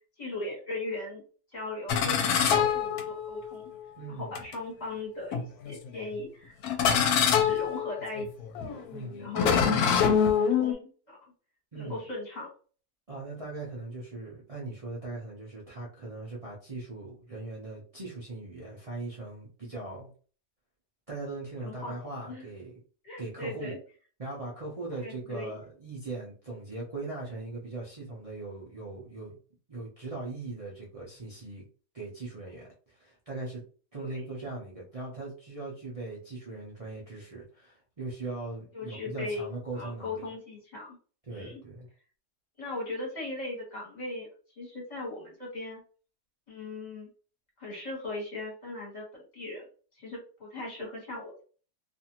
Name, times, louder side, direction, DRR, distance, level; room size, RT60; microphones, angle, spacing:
voice 1, 0.2-1.2 1.5-3.6 4.1-8.3 8.7-8.8 9.2-10.1 10.3-11.3 11.7-12.5 21.6-21.9 22.3-22.4 23.0-23.8 24.9-25.6 34.0-34.3 38.7-39.4 39.7-41.0 41.3-41.6 42.6-44.3 44.6-45.8 46.5-47.1 47.6-49.6 50.0-51.4, left 2 dB, 30° left, -3 dB, 1.1 m, -38 dB
sound 1, 1.9-3.5 4.4-4.5 5.3-5.9 6.6-10.7, left 7 dB, 75° left, 1.0 m, -25 dB
voice 2, 4.0-4.3 8.9-9.8 11.7-12.0 13.1-20.1 21.1-22.8 23.2-23.8 24.2-29.4 29.7-31.6 31.9-33.6 33.9-40.3 41.3-41.9, right 2 dB, 60° right, -5 dB, 0.3 m, -40 dB
2.6 x 2.5 x 2.8 m, 0.40 s
omnidirectional pair, 1.7 m